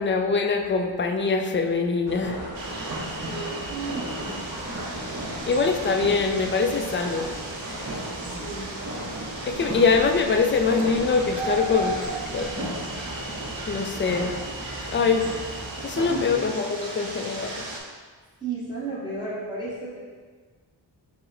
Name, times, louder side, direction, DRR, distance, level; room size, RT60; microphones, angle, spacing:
voice 1, 0.0-2.4 5.5-7.3 9.4-12.0 12.3-12.5 13.7-14.3 14.9-15.3 15.8-17.6, left 4 dB, 30° left, 5 dB, 0.3 m, -23 dB
sound 1, 2.1-16.4, right 1 dB, 35° right, 0.8 m, -36 dB
sound 2, 2.5-17.8, right 2 dB, 75° right, 0.8 m, -36 dB
voice 2, 3.2-4.7 8.2-8.7 16.0-16.3 18.4-20.0, right 3 dB, 10° right, -9 dB, 0.9 m, -34 dB
4.7 x 2.1 x 3.8 m, 1.5 s
cardioid pair, 60°, 46 cm